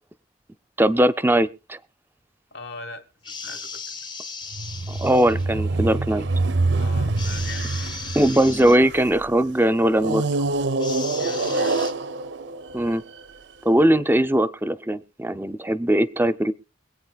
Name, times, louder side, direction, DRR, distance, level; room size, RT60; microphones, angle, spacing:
voice 1, 0.8-1.8 4.9-6.3 8.1-10.3 12.7-13.0 13.6-16.5, right 1 dB, 10° right, 0.5 m, -20 dB
voice 2, 2.5-4.1 6.8-7.9 11.2-11.8, left 2 dB, 65° left, 1.4 m, -40 dB
sound 1, 3.2-5.5 7.2-8.8 10.8-11.9, left 5 dB, 25° left, 0.7 m, -36 dB
sound 2, 4.5-9.2 10.0-13.4, right 3 dB, 85° right, 0.6 m, -25 dB
24.5 x 8.7 x 2.3 m
head